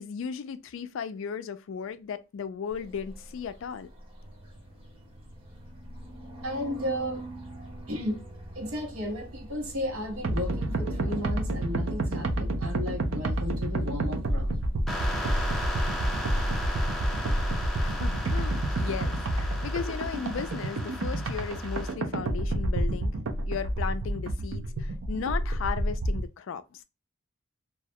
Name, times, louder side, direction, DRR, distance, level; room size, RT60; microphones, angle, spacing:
voice 1, 0.0-3.9 17.8-23.2 23.5-26.8, left 6 dB, 65° left, 0.3 m, -36 dB
sound 1, 2.7-16.5, right 1 dB, 25° right, 0.7 m, -45 dB
voice 2, 6.4-7.3 7.9-8.2 8.5-14.6, left 1 dB, 80° right, 0.9 m, -34 dB
sound 2, 10.2-26.3, right 1 dB, 65° right, 0.4 m, -29 dB
sound 3, 14.9-21.9, equal, ahead, 0.4 m, -37 dB
2.3 x 2.1 x 2.7 m
head